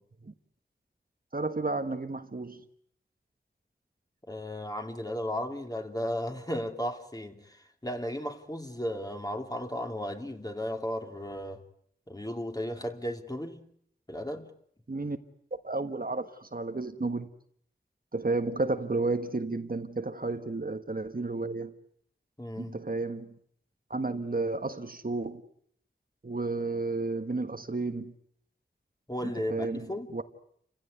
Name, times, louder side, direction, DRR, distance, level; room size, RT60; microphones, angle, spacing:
voice 1, 1.3-2.6 14.9-15.2 15.5-17.3 18.1-21.7 22.6-23.3 23.9-25.4 26.2-28.1 29.5-29.9 30.1-30.2, right 3 dB, 50° right, 1.5 m, -32 dB
voice 2, 4.3-11.6 12.1-13.6 14.1-14.5 22.4-22.8 29.1-30.1, equal, 20° left, 3.0 m, -35 dB
29.5 x 16.0 x 9.5 m
wide cardioid pair, 60°, 19 cm